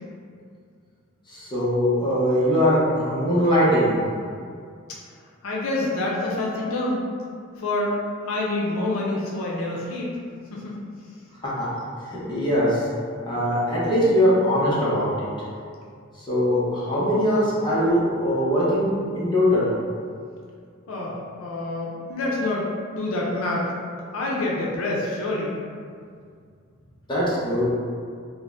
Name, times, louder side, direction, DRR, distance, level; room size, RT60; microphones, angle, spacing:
voice 1, 1.3-3.9 11.4-11.7 12.1-12.8 13.3-15.1 16.3-18.9 19.1-19.7 27.1-27.7, equal, 25° left, -9 dB, 0.7 m, -21 dB
voice 2, 5.4-7.0 7.6-8.0 8.3-10.1 10.5-10.7 20.9-21.1 21.4-22.6 23.0-23.7 24.1-25.6, left 2 dB, 75° left, -4 dB, 0.5 m, -26 dB
2.5 x 2.0 x 3.3 m, 2.2 s
head